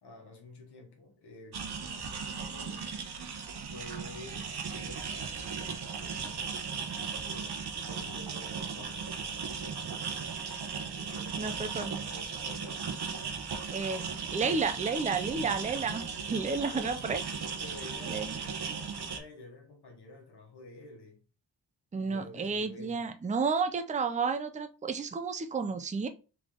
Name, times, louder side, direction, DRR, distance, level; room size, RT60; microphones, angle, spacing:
voice 1, 0.0-2.9 3.7-7.6 7.9-10.4 10.9-12.9 16.6-21.2 22.0-23.1, left 2 dB, 65° left, 1.5 m, -50 dB
sound 1, 1.5-19.2, right 6 dB, 65° right, 0.9 m, -37 dB
voice 2, 11.4-12.0 13.7-17.2 18.1-18.4 21.9-26.1, right 5 dB, 20° right, 0.4 m, -32 dB
3.7 x 3.3 x 3.7 m
wide cardioid pair, 100°, 42 cm